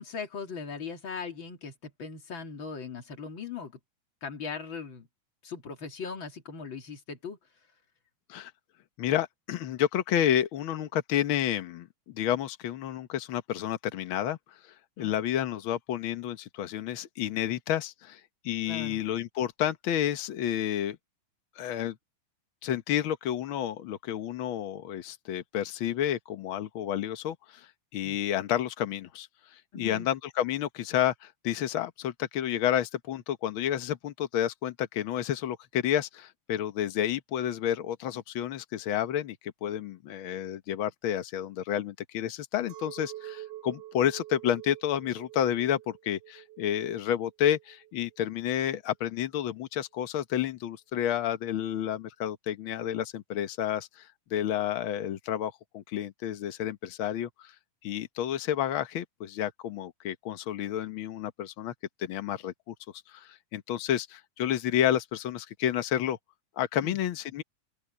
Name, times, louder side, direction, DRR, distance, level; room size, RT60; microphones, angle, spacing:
voice 1, 0.0-3.8 4.2-5.1 5.4-7.4 15.0-15.1 18.7-19.0 29.7-30.1 66.8-67.0, left 5 dB, 40° left, 3.0 m, -39 dB
voice 2, 9.0-14.4 15.0-21.0 21.6-21.9 22.6-57.5 57.8-61.7 62.0-62.7 63.1-66.2 66.6-67.4, left 10 dB, 85° left, 1.1 m, -30 dB
Chink clink, 42.7-48.2, right 14 dB, 75° right, 2.5 m, -46 dB
open air
omnidirectional pair, 3.8 m